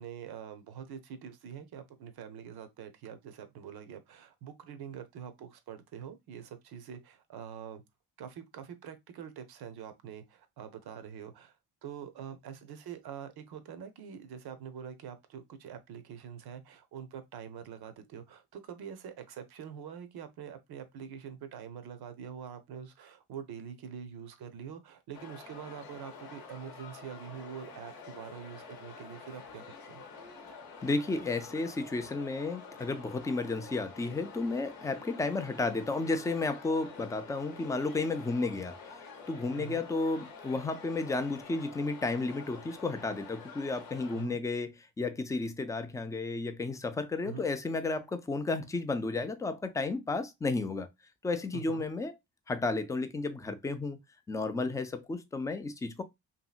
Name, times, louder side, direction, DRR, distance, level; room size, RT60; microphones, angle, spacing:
voice 1, 0.0-7.8 8.2-11.5 11.8-30.0 39.6-39.8 44.1-44.4 47.2-47.5 51.5-51.8, right 8 dB, 55° right, 0.6 m, -45 dB
sound 1, 25.1-44.2, left 5 dB, 75° left, 0.8 m, -48 dB
voice 2, 30.8-38.8 39.3-50.9 51.2-52.1 52.5-54.0 54.3-56.0, left 3 dB, 10° left, 0.3 m, -32 dB
2.7 x 2.7 x 2.3 m
hypercardioid pair, 45°, 47 cm